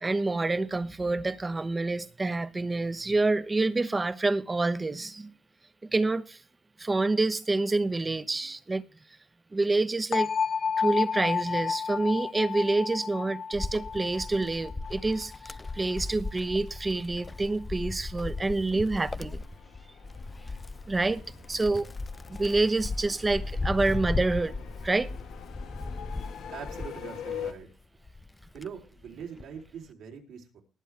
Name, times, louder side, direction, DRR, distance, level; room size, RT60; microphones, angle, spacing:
voice 1, 0.0-5.3 5.9-6.4 6.8-8.8 9.5-10.3 10.8-19.4 20.9-21.2 21.5-21.9 22.4-24.6 24.8-25.1, right 2 dB, 20° right, 1.0 m, -27 dB
sound 1, 10.1-16.0, left 6 dB, 50° left, 0.9 m, -31 dB
Wind, 13.5-27.6 28.1-29.6, left 3 dB, 20° left, 0.6 m, -37 dB
sound 2, 19.3-27.5, left 8 dB, 85° left, 1.9 m, -44 dB
voice 2, 26.5-27.7 28.5-30.6, right 7 dB, 80° right, 3.7 m, -42 dB
19.5 x 8.2 x 3.5 m
cardioid pair, 90°, 0 cm